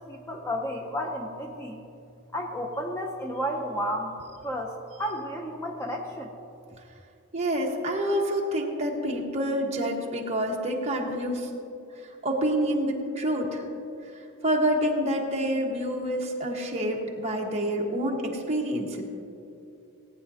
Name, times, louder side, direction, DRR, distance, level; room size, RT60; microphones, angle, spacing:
voice 1, 0.0-1.8 2.3-4.1 4.4-6.3, equal, 10° left, 1 dB, 0.6 m, -32 dB
voice 2, 7.3-11.5 12.0-13.6 14.0-19.0, equal, 30° right, -1 dB, 1.3 m, -28 dB
18.0 x 9.3 x 2.8 m, 2.6 s
head